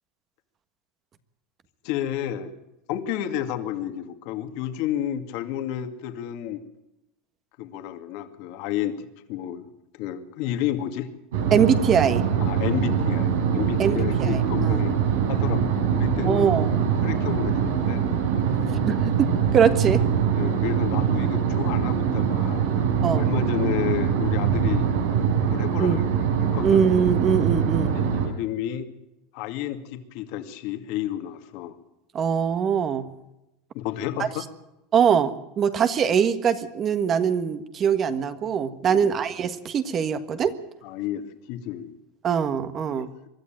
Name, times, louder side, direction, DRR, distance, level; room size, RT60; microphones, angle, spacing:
voice 1, 1.8-2.5 2.9-6.6 7.6-9.7 9.9-11.1 12.5-15.0 15.3-16.5 17.0-18.1 20.4-22.6 23.1-24.9 25.4-26.0 26.4-26.8 27.9-28.9 29.3-31.8 33.7-34.4 38.9-39.0 40.8-41.9 42.9-43.1, left 11 dB, 60° left, 7 dB, 2.3 m, -31 dB
sound 1, 11.3-28.3, right 7 dB, 85° right, 4.6 m, -23 dB
voice 2, 11.5-12.2 13.8-14.8 16.2-16.7 18.9-20.0 23.0-23.3 25.8-26.0 26.6-27.9 32.1-33.1 34.2-34.3 34.9-40.6 42.2-43.1, right 7 dB, 30° right, 11 dB, 1.5 m, -22 dB
23.5 x 12.5 x 9.1 m, 0.91 s
supercardioid pair, 140°, 0 cm